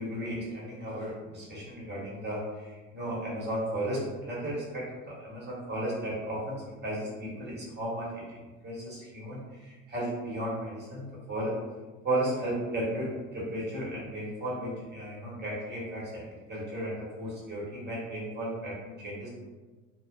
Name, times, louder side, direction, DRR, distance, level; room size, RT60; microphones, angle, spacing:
voice 1, 0.0-8.2 8.6-11.6 12.0-19.3, right 1 dB, 25° right, -6 dB, 1.2 m, -34 dB
2.4 x 2.1 x 2.5 m, 1.3 s
hypercardioid pair, 65°, 40 cm